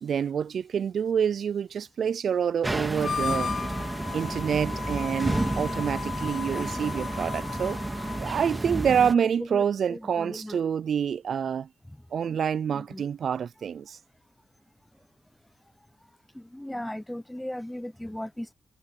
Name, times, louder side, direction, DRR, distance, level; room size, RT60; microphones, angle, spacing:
voice 1, 0.0-3.5 4.1-7.8 8.2-11.7 12.1-14.0, right 7 dB, 70° right, 0.4 m, -27 dB
sound 1, 2.6-9.1, right 2 dB, 20° right, 2.4 m, -31 dB
Harmonica, 2.9-8.6, left 6 dB, 65° left, 1.8 m, -35 dB
voice 2, 6.4-7.0 9.1-10.6 12.3-12.4 12.7-13.0 16.3-18.5, left 1 dB, 10° left, 0.7 m, -38 dB
supercardioid pair, 45°, 0 cm